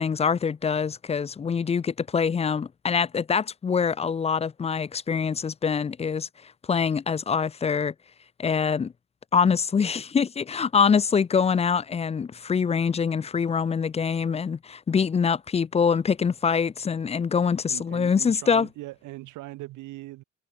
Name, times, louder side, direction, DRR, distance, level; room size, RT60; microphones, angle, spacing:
voice 1, 0.0-6.3 6.7-7.9 8.4-8.9 9.3-18.7, left 6 dB, 20° left, 0.4 m, -24 dB
voice 2, 17.7-20.2, right 18 dB, 85° right, 0.7 m, -40 dB
cardioid pair, 90°, 30 cm